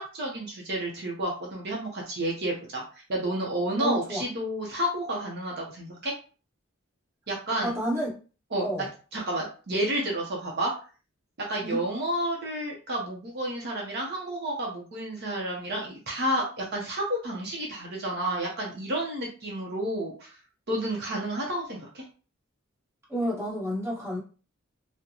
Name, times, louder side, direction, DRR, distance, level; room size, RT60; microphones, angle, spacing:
voice 1, 0.0-6.1 7.3-7.7 8.5-8.7 9.1-10.7 11.4-20.4 20.7-22.0, right 1 dB, 55° right, 0.8 m, -30 dB
voice 2, 3.8-4.2 7.6-8.2 8.6-8.9 11.6-11.8 23.1-24.2, equal, 15° right, 1.4 m, -30 dB
3.8 x 2.1 x 2.9 m
head